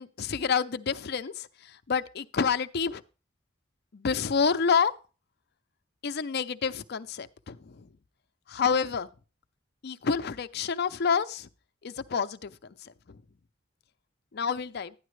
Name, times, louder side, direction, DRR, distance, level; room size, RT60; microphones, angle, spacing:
voice 1, 0.0-3.0 3.9-4.9 6.0-7.9 8.5-9.1 9.8-11.5 11.8-13.2 14.3-14.9, left 6 dB, 55° left, 0.5 m, -29 dB
12.0 x 10.0 x 3.2 m
head